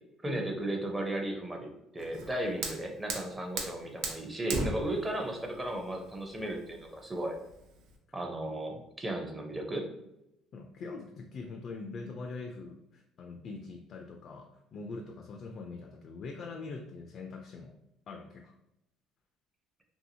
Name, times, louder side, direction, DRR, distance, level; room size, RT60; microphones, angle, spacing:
voice 1, 0.2-7.4 8.1-9.9, right 1 dB, 15° right, 2 dB, 0.5 m, -35 dB
Fire, 2.0-8.0, right 3 dB, 75° right, 0.5 m, -39 dB
voice 2, 10.5-17.8 18.1-18.5, left 3 dB, 45° left, 2 dB, 0.3 m, -43 dB
2.7 x 2.7 x 2.7 m, 0.87 s
cardioid pair, 130°, 0 cm